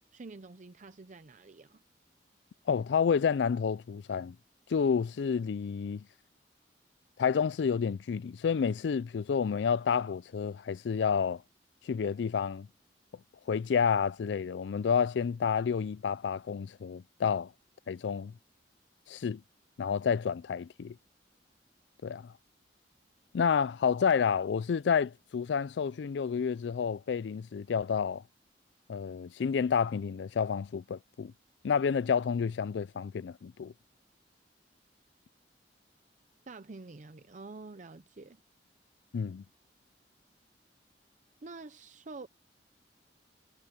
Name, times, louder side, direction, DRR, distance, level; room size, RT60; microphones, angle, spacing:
voice 1, 0.1-1.8 36.5-38.4 41.4-42.3, right 3 dB, 45° right, 0.6 m, -47 dB
voice 2, 2.7-4.4 4.7-6.0 7.2-11.4 11.8-12.7 13.5-17.5 17.9-18.3 19.1-19.4 19.8-21.0 22.0-22.3 23.3-28.2 28.9-31.3 31.6-33.7 39.1-39.4, left 6 dB, 80° left, 0.4 m, -29 dB
head